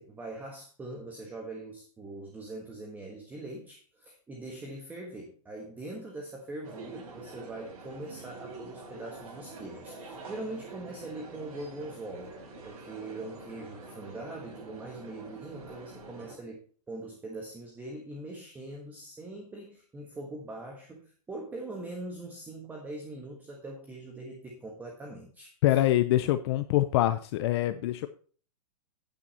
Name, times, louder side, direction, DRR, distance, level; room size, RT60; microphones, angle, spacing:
voice 1, 0.0-12.3 12.6-25.9, right 2 dB, 10° right, 1 dB, 1.4 m, -42 dB
sound 1, 6.6-16.4, right 3 dB, 60° right, 4.9 m, -46 dB
voice 2, 25.6-28.1, left 14 dB, 40° left, 11 dB, 0.6 m, -25 dB
9.0 x 8.2 x 4.2 m, 0.42 s
hypercardioid pair, 155°, 20 cm